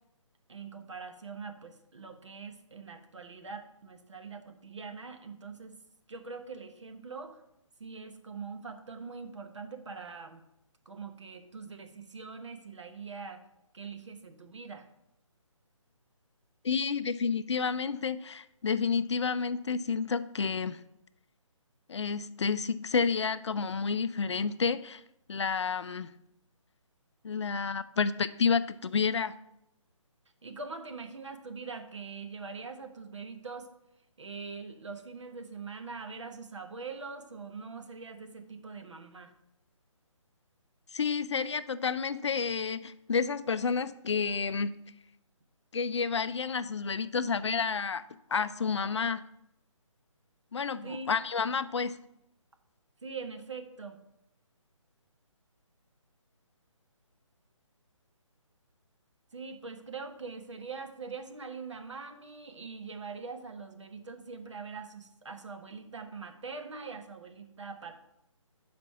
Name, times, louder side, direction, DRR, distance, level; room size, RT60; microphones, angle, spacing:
voice 1, 0.5-5.8 6.1-7.4 7.8-10.4 10.8-13.4 13.7-14.9 30.4-33.7 34.2-39.3 50.8-51.1 53.0-54.0 59.3-68.0, right 4 dB, 60° right, 6 dB, 1.0 m, -43 dB
voice 2, 16.6-20.8 21.9-25.0 25.3-26.1 27.2-29.3 40.9-44.7 45.7-48.0 48.3-49.2 50.5-52.0, left 5 dB, 55° left, 15 dB, 0.4 m, -30 dB
6.0 x 5.2 x 5.7 m, 0.82 s
figure-of-eight pair, 145°, 17 cm